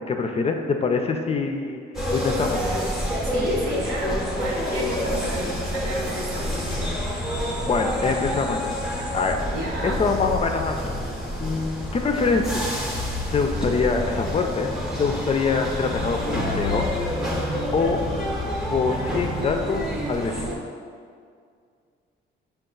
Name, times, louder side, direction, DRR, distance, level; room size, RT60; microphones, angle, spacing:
voice 1, 0.1-1.8 2.1-2.6 7.6-8.7 9.1-9.4 9.8-10.9 11.4-12.7 13.3-14.7 15.0-17.0 17.7-18.0 18.7-20.6, left 4 dB, 30° left, 4 dB, 0.4 m, -24 dB
sound 1, 1.9-20.5, equal, ahead, 0.7 m, -28 dB
voice 2, 3.2-7.0 9.5-10.0, right 1 dB, 70° right, -4 dB, 1.2 m, -31 dB
sound 2, 4.1-9.4, right 2 dB, 35° right, 0.7 m, -44 dB
5.5 x 2.3 x 3.8 m, 2.2 s
cardioid pair, 90°, 20 cm